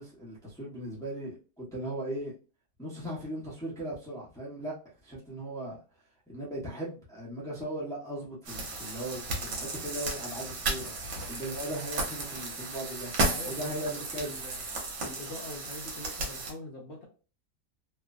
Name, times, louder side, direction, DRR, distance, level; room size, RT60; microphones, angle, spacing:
voice 1, 0.0-2.3 2.8-4.7 5.0-5.8 6.3-10.9 11.3-13.1 13.4-14.3, right 1 dB, 5° left, -6 dB, 0.5 m, -38 dB
sound 1, 8.4-16.5, right 2 dB, 65° right, 1.4 m, -34 dB
voice 2, 13.3-14.6 15.0-17.1, left 1 dB, 65° left, -1 dB, 0.7 m, -43 dB
3.1 x 2.1 x 2.4 m, 0.35 s
omnidirectional pair, 1.8 m